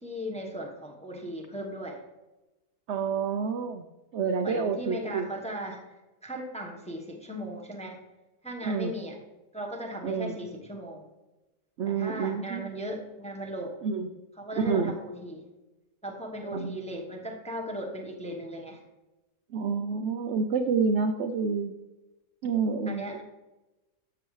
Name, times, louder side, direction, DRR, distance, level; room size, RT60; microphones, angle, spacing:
voice 1, 0.0-2.0 4.4-8.0 8.4-9.2 9.5-11.0 11.9-13.8 14.4-15.4 16.0-18.8 22.9-23.2, equal, 5° left, 1 dB, 0.8 m, -37 dB
voice 2, 2.9-3.9 4.1-5.3 8.6-8.9 10.0-10.4 11.8-12.7 13.8-14.2 14.6-14.9 16.5-16.8 19.5-21.7 22.4-23.0, right 5 dB, 65° right, 7 dB, 0.7 m, -28 dB
13.0 x 6.9 x 3.2 m, 1.1 s
omnidirectional pair, 1.8 m